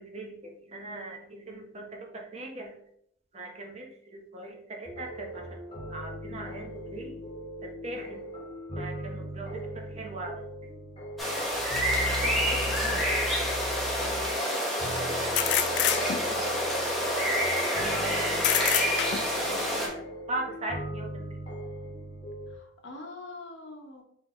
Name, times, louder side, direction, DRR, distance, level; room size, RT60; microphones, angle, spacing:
voice 1, 0.0-2.8 3.3-5.6 5.9-7.3 7.6-8.2 8.8-10.7 14.0-16.6 17.7-21.4, right 2 dB, 35° right, 1 dB, 0.8 m, -41 dB
sound 1, 4.8-22.5, equal, 25° left, 1.1 m, -39 dB
sound 2, 11.2-19.9, equal, ahead, 0.9 m, -28 dB
voice 2, 12.0-13.0 22.5-24.0, left 2 dB, 85° left, 1 dB, 1.0 m, -42 dB
sound 3, 13.0-13.1 15.4-16.5 18.4-19.4, left 10 dB, 65° left, 0.3 m, -27 dB
4.3 x 3.3 x 3.0 m, 0.68 s
head